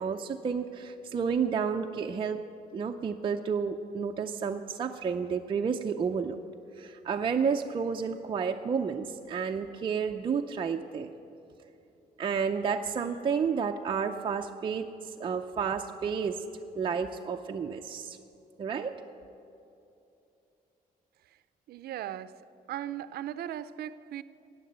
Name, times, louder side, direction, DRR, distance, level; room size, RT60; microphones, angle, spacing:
voice 1, 0.0-2.4 2.7-6.4 6.8-11.1 12.2-16.4 16.8-18.2 18.6-19.0, right 6 dB, 35° right, 2 dB, 0.5 m, -31 dB
voice 2, 21.7-22.3 22.7-24.2, right 11 dB, 90° right, 14 dB, 0.5 m, -37 dB
15.0 x 9.4 x 7.9 m, 2.8 s
cardioid pair, 160°, 16 cm